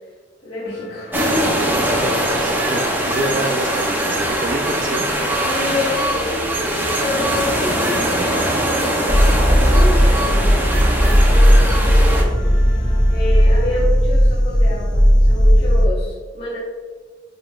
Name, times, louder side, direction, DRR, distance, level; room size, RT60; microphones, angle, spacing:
voice 1, 0.4-1.5 5.3-12.8 13.1-16.6, left 2 dB, 35° left, -11 dB, 1.5 m, -28 dB
sound 1, 0.6-13.8, left 1 dB, 70° left, 1.6 m, -38 dB
sound 2, 1.1-12.2, right 1 dB, 10° right, 0.8 m, -21 dB
voice 2, 2.0-5.1, right 1 dB, 45° right, 4 dB, 0.7 m, -26 dB
sound 3, 9.1-15.9, equal, 5° left, 0.3 m, -14 dB
10.0 x 4.1 x 2.5 m, 1.5 s
head